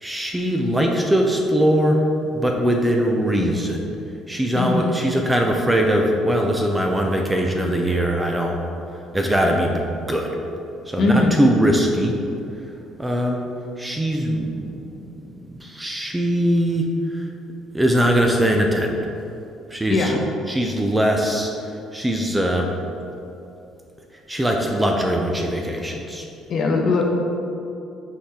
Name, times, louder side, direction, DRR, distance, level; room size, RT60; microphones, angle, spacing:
voice 1, 0.0-2.0 2.3-3.9 4.3-8.6 9.1-9.8 10.1-10.3 10.9-12.1 13.0-13.4 13.8-14.8 15.5-17.3 17.7-18.9 19.7-21.5 21.9-22.7 24.3-26.3, equal, 10° right, 1 dB, 0.5 m, -21 dB
voice 2, 4.5-4.9 11.0-11.4 19.9-20.2 26.5-27.0, left 3 dB, 45° left, 1 dB, 0.9 m, -20 dB
5.8 x 4.9 x 4.2 m, 2.8 s
cardioid pair, 140°, 0 cm